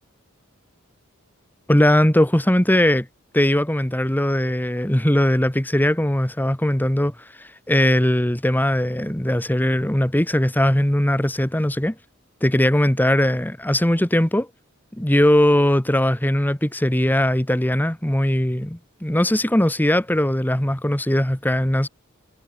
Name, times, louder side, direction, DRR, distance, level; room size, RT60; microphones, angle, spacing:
voice 1, 1.7-3.1 3.3-7.1 7.4-11.9 12.4-14.5 15.0-21.9, left 1 dB, 10° left, 1.2 m, -19 dB
head